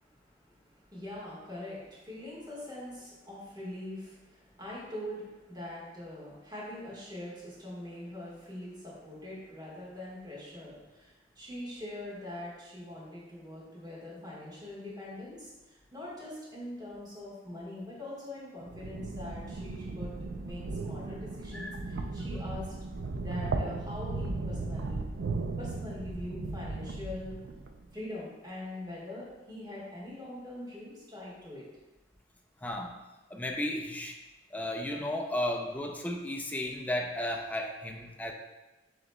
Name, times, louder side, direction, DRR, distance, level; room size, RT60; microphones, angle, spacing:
voice 1, 0.0-20.1 20.4-22.7 23.2-25.0 25.6-27.4 27.9-31.6, left 1 dB, 25° right, -7 dB, 1.5 m, -43 dB
sound 1, 18.6-27.8, right 3 dB, 75° right, 0.4 m, -36 dB
voice 2, 32.6-32.9 33.3-34.2 34.5-38.3, left 1 dB, 10° left, 2 dB, 0.4 m, -34 dB
7.6 x 3.0 x 2.2 m, 1.1 s
head